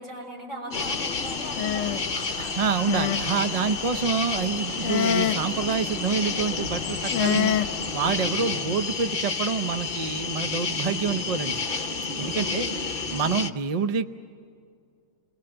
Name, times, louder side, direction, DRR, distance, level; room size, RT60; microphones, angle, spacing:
voice 1, 0.0-2.0 12.1-12.6, equal, 70° right, -1 dB, 6.6 m, -38 dB
sound 1, 0.7-8.3, left 9 dB, 65° left, 1.1 m, -30 dB
sound 2, 0.7-13.5, left 4 dB, 45° left, 1.0 m, -30 dB
voice 2, 2.1-7.6 7.9-11.6 12.2-12.7 13.1-14.1, right 5 dB, 40° right, 10 dB, 0.6 m, -27 dB
28.5 x 21.5 x 7.9 m, 2.2 s
omnidirectional pair, 1.4 m